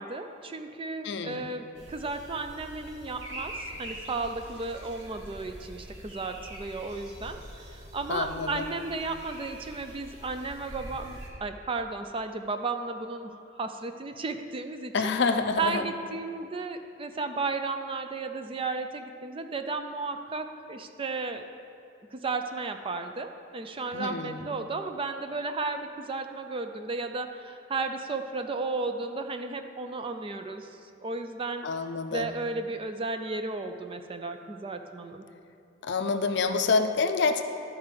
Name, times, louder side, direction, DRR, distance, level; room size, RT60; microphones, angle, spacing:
voice 1, 0.0-7.4 7.7-15.1 15.6-21.4 22.1-30.7 31.0-31.7 32.1-35.3, right 3 dB, 30° right, 7 dB, 0.4 m, -34 dB
voice 2, 1.0-1.4 8.1-8.6 14.9-15.8 23.9-24.4 31.6-32.3 35.8-37.4, left 4 dB, 65° left, 7 dB, 0.5 m, -27 dB
sound 1, 1.7-11.3, right 1 dB, 75° right, 1.4 m, -44 dB
12.0 x 4.6 x 5.1 m, 2.5 s
head